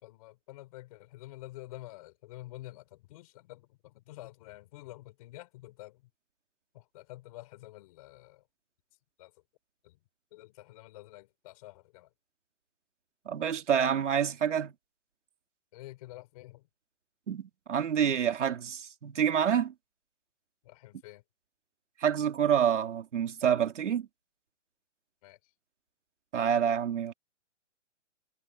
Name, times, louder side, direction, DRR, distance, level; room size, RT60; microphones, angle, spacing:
voice 1, 0.0-6.0 6.7-8.4 9.2-9.3 9.8-10.0 10.3-12.1 15.7-16.7 20.6-21.2 25.2-25.4, left 18 dB, 30° left, 4.7 m, -48 dB
voice 2, 13.3-14.7 17.3-19.7 22.0-24.1 26.3-27.1, right 8 dB, 75° right, 3.0 m, -27 dB
hypercardioid pair, 170°, 36 cm